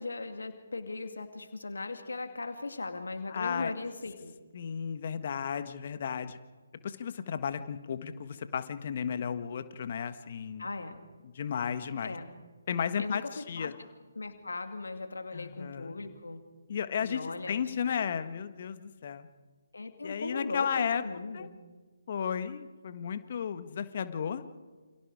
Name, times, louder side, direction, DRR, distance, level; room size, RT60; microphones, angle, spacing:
voice 1, 0.0-4.3 10.6-11.0 12.0-12.3 13.0-13.2 13.6-13.7 14.2-16.4 17.0-17.6 19.7-21.6, left 3 dB, 70° left, 6 dB, 2.5 m, -38 dB
voice 2, 3.3-3.7 4.5-6.4 6.8-10.7 11.2-12.1 12.7-13.7 15.3-16.0 16.7-17.2 17.5-19.3 20.0-21.0 21.3-21.5 22.1-24.4, left 7 dB, 45° left, 10 dB, 1.6 m, -34 dB
29.0 x 27.5 x 4.9 m, 1.4 s
figure-of-eight pair, 140°, 0 cm